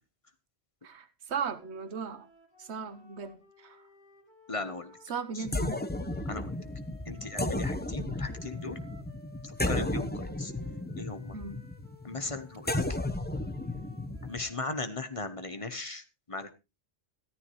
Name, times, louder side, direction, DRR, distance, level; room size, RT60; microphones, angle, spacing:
voice 1, 0.8-2.3 2.6-3.8 5.1-5.8 11.3-11.6, right 6 dB, 80° right, 1.3 m, -37 dB
sound 1, 1.5-7.6 8.1-14.8, equal, 45° left, 2.8 m, -57 dB
voice 2, 4.5-4.9 5.3-5.4 6.2-6.5 7.1-8.8 9.4-10.5 11.0-11.3 12.0-13.0 14.2-16.5, left 3 dB, 30° left, 1.1 m, -38 dB
sound 2, 5.4-14.4, left 1 dB, 10° left, 0.9 m, -33 dB
14.5 x 13.0 x 3.1 m
omnidirectional pair, 1.1 m